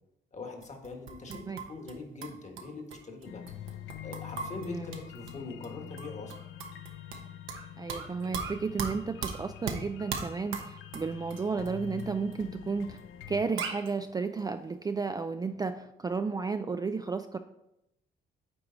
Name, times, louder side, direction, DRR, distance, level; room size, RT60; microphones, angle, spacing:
voice 1, 0.3-3.4 4.0-6.3, left 3 dB, 35° left, 4 dB, 1.5 m, -42 dB
sound 1, 0.6-1.9 2.2-5.4 5.6-5.7 6.0-7.6 7.9-11.7 12.0-12.1 12.3-12.4 13.0-13.1 13.3-13.4 13.6-13.9, right 6 dB, 85° right, 1.0 m, -38 dB
sound 2, 3.2-13.4, left 11 dB, 85° left, 0.6 m, -45 dB
voice 2, 4.6-4.9 7.8-13.0 13.3-17.4, right 4 dB, 20° right, 8 dB, 0.3 m, -33 dB
8.8 x 4.6 x 3.9 m, 0.85 s
cardioid pair, 90°, 20 cm